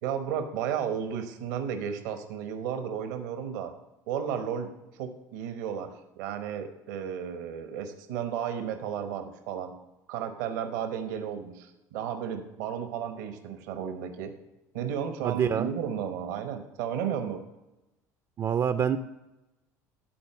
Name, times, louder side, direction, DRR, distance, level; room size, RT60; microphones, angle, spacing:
voice 1, 0.0-3.7 4.1-5.9 6.2-9.7 10.1-14.3 14.7-17.4, right 8 dB, 80° right, 7 dB, 1.0 m, -33 dB
voice 2, 15.2-15.7 18.4-19.0, right 8 dB, 40° right, 10 dB, 0.4 m, -26 dB
11.5 x 4.2 x 5.9 m, 0.99 s
hypercardioid pair, 70°, 10 cm